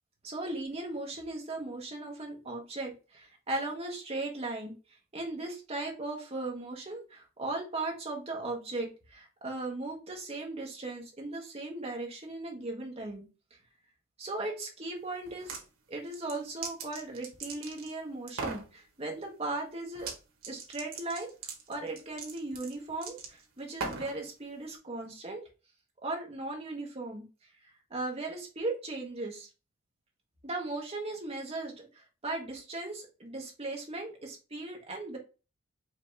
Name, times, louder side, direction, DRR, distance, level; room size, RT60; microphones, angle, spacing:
voice 1, 0.2-13.2 14.2-15.6 15.9-20.1 20.4-25.4 26.0-29.5 30.4-35.2, right 2 dB, 30° right, 0 dB, 1.2 m, -37 dB
sound 1, 15.3-15.6 16.1-17.9 18.3-18.7 20.0-20.2 20.4-24.2, right 4 dB, 85° right, 1.4 m, -39 dB
5.0 x 2.9 x 3.3 m, 0.32 s
head